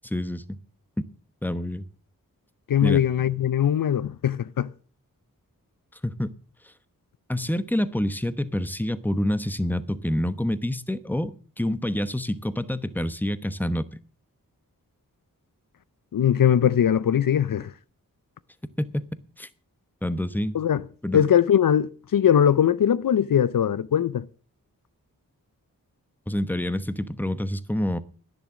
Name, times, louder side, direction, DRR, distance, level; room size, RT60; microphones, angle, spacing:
voice 1, 0.0-0.6 1.0-1.1 1.4-1.8 2.8-3.0 6.0-6.3 7.3-13.9 18.8-19.0 19.4-19.5 20.0-20.6 21.0-21.2 26.3-28.0, left 1 dB, 5° left, 1.0 m, -27 dB
voice 2, 2.7-4.7 16.1-17.7 20.5-20.8 21.1-24.2, left 9 dB, 70° left, 0.6 m, -21 dB
11.0 x 10.5 x 6.2 m
cardioid pair, 50°, 34 cm